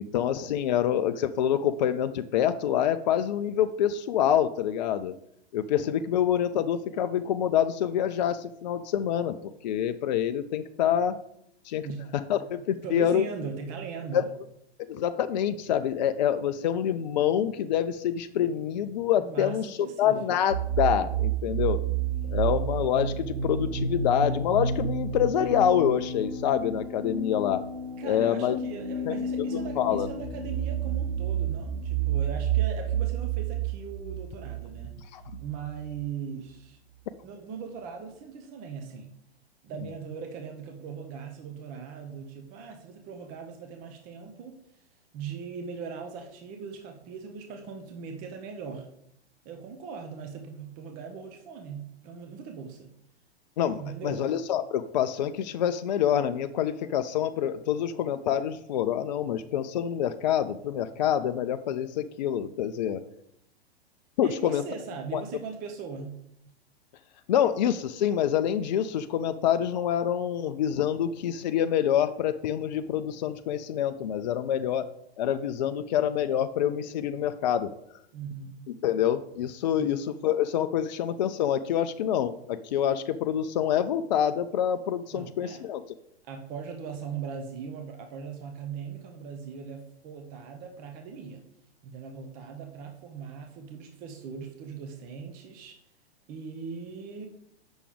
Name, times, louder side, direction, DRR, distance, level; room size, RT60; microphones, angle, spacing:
voice 1, 0.0-5.1 5.5-11.1 11.6-11.9 12.1-13.2 14.1-14.2 14.9-21.8 22.3-27.6 28.0-28.6 29.1-29.2 29.5-30.1 35.1-35.2 53.6-63.0 64.2-64.6 65.1-65.2 67.3-74.9 75.2-77.7 78.8-85.8, left 9 dB, 45° left, 10 dB, 0.4 m, -26 dB
voice 2, 11.8-12.2 12.8-14.3 19.2-20.4 28.0-35.0 35.4-36.8 37.2-39.1 39.6-44.8 45.1-48.9 49.4-52.9 53.8-54.3 64.2-66.2 78.1-78.6 79.8-79.9 85.1-85.7 86.2-91.4 91.8-95.8 96.3-97.3, right 6 dB, 25° right, 4 dB, 0.8 m, -39 dB
sound 1, 20.5-36.0, right 6 dB, 60° right, 2.9 m, -30 dB
8.2 x 6.1 x 3.6 m, 0.75 s
figure-of-eight pair, 105°, 32 cm